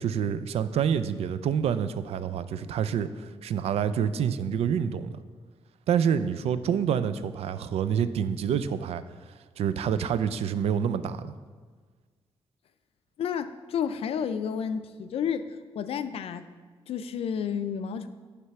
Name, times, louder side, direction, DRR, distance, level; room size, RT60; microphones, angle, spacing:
voice 1, 0.0-5.2 5.9-11.3, right 8 dB, 80° right, 13 dB, 0.4 m, -27 dB
voice 2, 13.2-16.5 16.9-18.1, left 7 dB, 70° left, 11 dB, 0.4 m, -31 dB
9.5 x 3.3 x 5.8 m, 1.5 s
wide cardioid pair, 170°, 10 cm